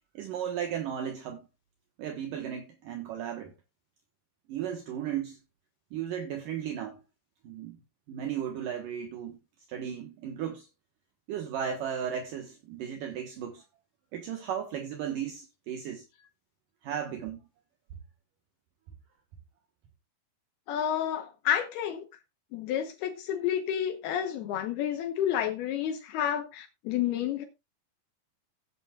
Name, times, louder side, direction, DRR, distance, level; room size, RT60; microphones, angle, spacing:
voice 1, 0.1-1.5 2.0-3.5 4.5-5.4 5.9-7.0 7.4-7.8 8.1-9.4 9.7-10.7 11.3-13.6 14.1-16.0 16.8-17.4, right 9 dB, 65° right, 2.7 m, -35 dB
voice 2, 20.7-22.1 22.5-27.5, left 10 dB, 80° left, 3.0 m, -30 dB
16.0 x 9.2 x 2.4 m
omnidirectional pair, 4.5 m